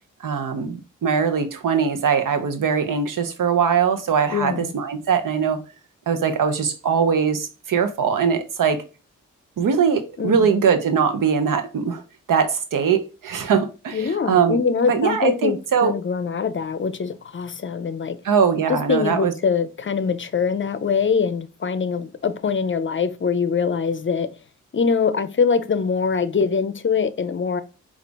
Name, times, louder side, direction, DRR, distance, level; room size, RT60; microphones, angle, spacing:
voice 1, 0.2-5.6 6.1-8.8 9.6-12.0 12.3-14.6 14.9-15.9 18.2-19.3, right 6 dB, 85° right, 0.8 m, -21 dB
voice 2, 4.3-4.7 10.2-10.4 13.9-18.2 18.7-24.3 24.7-27.6, left 6 dB, 40° left, 0.5 m, -23 dB
5.0 x 2.5 x 3.4 m
cardioid pair, 55°, 31 cm